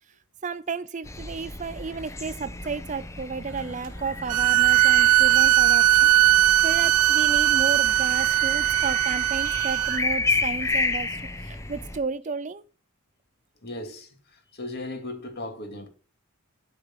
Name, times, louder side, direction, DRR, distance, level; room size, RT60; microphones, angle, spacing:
voice 1, 0.4-6.1 6.6-11.1 11.4-12.6, right 4 dB, 35° right, 0.4 m, -33 dB
sound 1, 1.0-12.0, left 3 dB, 15° left, 0.7 m, -32 dB
sound 2, 3.4-10.9, right 3 dB, 55° right, 3.4 m, -49 dB
sound 3, 4.3-10.0, right 14 dB, 90° right, 0.5 m, -19 dB
voice 2, 13.6-15.9, left 2 dB, 45° left, 2.3 m, -37 dB
12.5 x 5.0 x 7.2 m
head